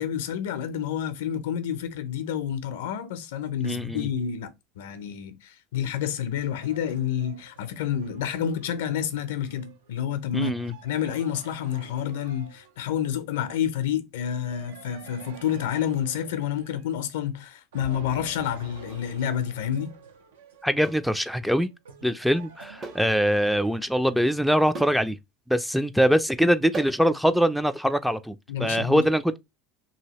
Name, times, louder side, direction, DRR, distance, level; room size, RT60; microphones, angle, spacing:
voice 1, 0.0-19.9 28.5-29.1, left 9 dB, 80° left, 0.5 m, -29 dB
voice 2, 3.6-4.1 10.3-10.7 20.6-21.7 22.0-25.2 25.5-29.4, equal, ahead, 0.3 m, -23 dB
sound 1, 5.7-13.1 14.5-17.3 17.7-24.2, right 4 dB, 85° right, 0.6 m, -49 dB
sound 2, 18.9-19.1 20.8-21.1 22.8-23.1 23.4-23.5 24.7-25.0 26.7-27.1, right 3 dB, 35° right, 0.7 m, -38 dB
2.7 x 2.7 x 2.9 m
hypercardioid pair, 85°, 0 cm